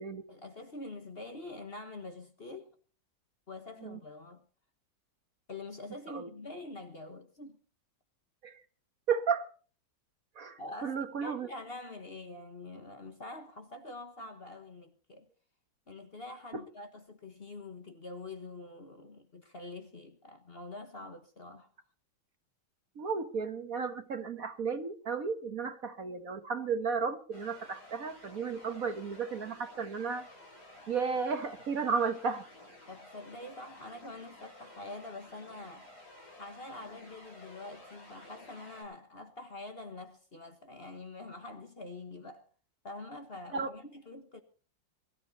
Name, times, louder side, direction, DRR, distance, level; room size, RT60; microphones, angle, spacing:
voice 1, 0.3-2.7 3.5-4.4 5.5-7.6 10.6-15.3 15.9-21.7 32.9-35.9 36.4-42.4 42.8-44.4, left 2 dB, 35° left, 1.4 m, -45 dB
voice 2, 9.1-9.5 10.3-11.5 16.5-16.6 22.9-30.3 30.9-32.4 43.5-43.7, right 5 dB, 50° right, 1.7 m, -33 dB
sound 1, 27.3-38.8, left 1 dB, 60° left, 7.1 m, -53 dB
22.5 x 13.0 x 4.1 m
omnidirectional pair, 2.0 m